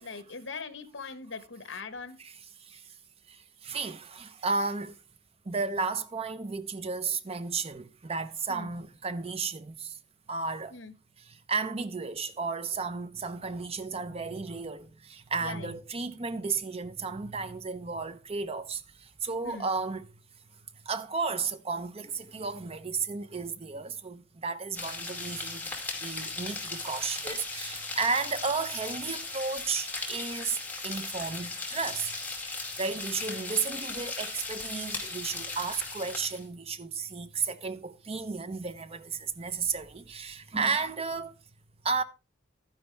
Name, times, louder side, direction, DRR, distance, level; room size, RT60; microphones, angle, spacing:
voice 1, 0.0-2.2 8.5-8.7 10.7-10.9 15.4-15.7 19.4-19.7, left 4 dB, 70° left, 1.3 m, -41 dB
voice 2, 2.2-2.9 3.3-5.0 5.4-10.0 10.3-10.8 11.2-20.1 20.8-25.7 26.0-30.6 30.8-32.1 32.4-41.3 41.8-42.0, right 4 dB, 30° right, 0.7 m, -33 dB
sound 1, 24.7-36.4, left 3 dB, 10° left, 2.3 m, -37 dB
11.5 x 9.9 x 3.3 m
head